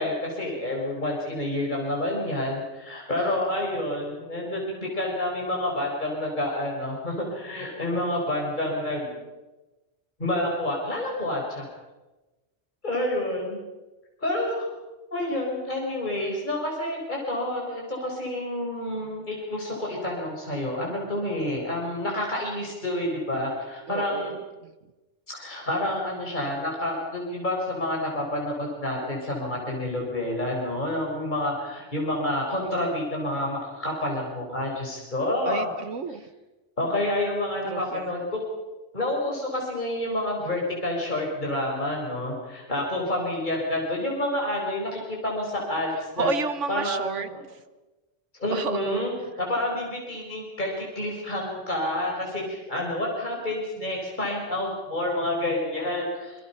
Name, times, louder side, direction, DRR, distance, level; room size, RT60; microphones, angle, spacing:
voice 1, 0.0-9.1 10.2-11.6 12.8-13.6 14.2-14.7 15.1-24.3 25.3-35.7 36.8-38.4 38.9-46.3 46.7-47.4 48.4-56.4, left 1 dB, 40° left, -2 dB, 4.8 m, -29 dB
voice 2, 23.9-24.7 35.4-36.3 37.7-38.2 46.2-47.6 48.5-49.0, right 5 dB, 80° right, 11 dB, 1.6 m, -31 dB
25.5 x 23.0 x 5.7 m, 1.1 s
omnidirectional pair, 1.2 m